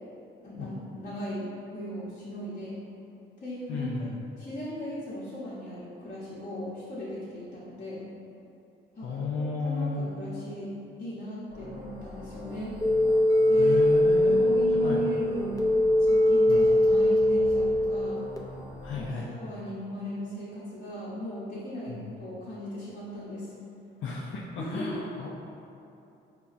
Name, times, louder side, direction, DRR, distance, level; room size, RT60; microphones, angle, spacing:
voice 1, 0.4-2.8 3.4-4.1 4.4-8.1 9.0-10.7 11.0-12.8 13.5-13.8 14.3-15.6 16.0-18.2 19.0-23.5 24.6-25.0, equal, 45° left, -10 dB, 0.9 m, -37 dB
voice 2, 3.7-4.2 9.0-10.1 13.6-14.5 14.8-15.0 16.5-16.6 18.8-19.3 21.9-22.1 24.0-25.3, left 3 dB, 75° left, -4 dB, 0.5 m, -33 dB
sound 1, 11.5-19.1, left 1 dB, 50° right, 0.9 m, -44 dB
sound 2, 12.8-18.4, left 1 dB, 20° left, 0.4 m, -22 dB
5.3 x 2.2 x 2.4 m, 2.7 s
cardioid pair, 90°, 20 cm